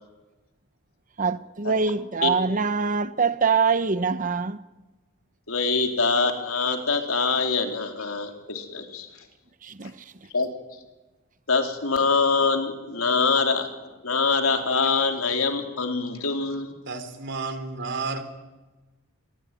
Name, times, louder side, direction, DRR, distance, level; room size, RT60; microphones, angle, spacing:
voice 1, 1.2-4.6 9.6-9.9, right 5 dB, 40° right, 0.9 m, -24 dB
voice 2, 5.5-9.1 10.3-10.5 11.5-16.7, left 4 dB, 85° left, 4.0 m, -24 dB
voice 3, 16.9-18.2, right 4 dB, 55° right, 3.5 m, -31 dB
27.5 x 21.5 x 9.2 m
head